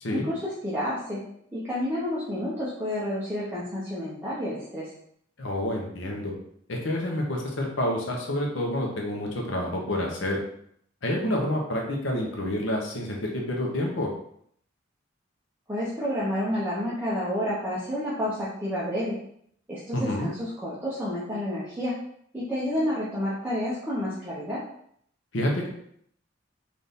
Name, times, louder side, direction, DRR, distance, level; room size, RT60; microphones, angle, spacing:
voice 1, 0.1-1.2 1.5-4.9 15.7-19.2 19.7-22.0 22.3-24.6, equal, 10° right, -9 dB, 0.8 m, -30 dB
voice 2, 5.4-6.3 6.7-10.4 11.0-14.1 19.9-20.3 25.3-25.7, left 1 dB, 70° left, 0 dB, 0.9 m, -28 dB
4.1 x 2.6 x 3.5 m, 0.67 s
head